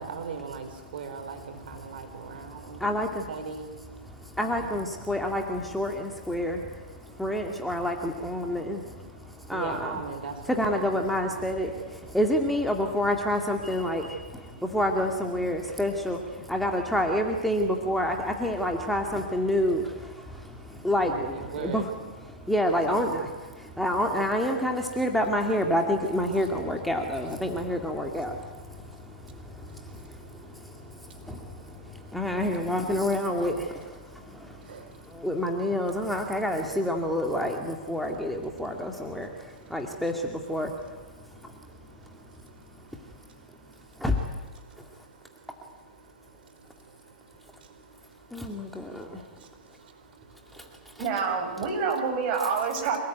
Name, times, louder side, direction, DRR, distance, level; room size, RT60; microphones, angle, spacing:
voice 1, 0.0-4.7 6.4-6.5 6.8-7.5 8.4-11.0 14.5-14.7 20.2-21.8 22.3-22.5 22.9-23.2 23.5-23.8 27.5-27.7 28.3-32.5 34.0-35.3 38.1-40.0 41.0-44.1 44.6-51.0, right 5 dB, 65° right, 6 dB, 4.9 m, -44 dB
voice 2, 2.1-3.3 4.1-10.0 10.5-21.9 22.2-40.7 41.4-41.5 44.0-44.2 48.3-49.2 50.5-50.6 51.0-51.1, left 1 dB, ahead, 2 dB, 2.1 m, -29 dB
voice 3, 51.0-53.0, right 5 dB, 35° right, 2 dB, 7.4 m, -27 dB
27.0 x 19.0 x 9.3 m, 1.4 s
hypercardioid pair, 135°, 6 cm